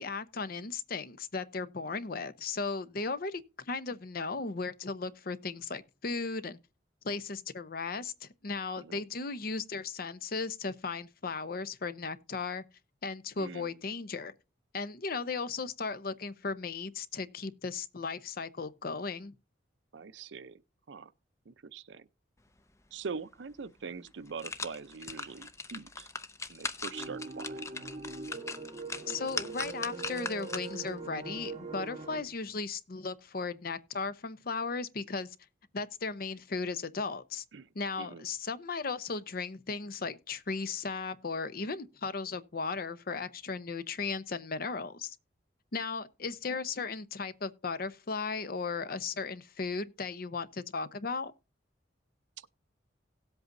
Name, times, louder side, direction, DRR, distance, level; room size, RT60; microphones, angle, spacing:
voice 1, 0.0-6.6 7.0-12.6 13.0-14.3 14.7-19.3 29.1-35.4 35.7-37.4 37.7-45.2 45.7-51.3, left 4 dB, 50° left, 0.7 m, -36 dB
voice 2, 13.4-13.8 19.9-20.6 20.9-21.1 21.5-22.1 22.9-26.1 26.5-27.6 37.5-37.7 38.0-38.2, right 5 dB, 70° right, 0.6 m, -43 dB
sound 1, 23.5-23.6 24.1-30.9 31.4-31.5, left 3 dB, 15° left, 0.6 m, -40 dB
sound 2, 26.9-32.2, right 3 dB, 35° right, 1.3 m, -42 dB
17.5 x 8.0 x 2.6 m
head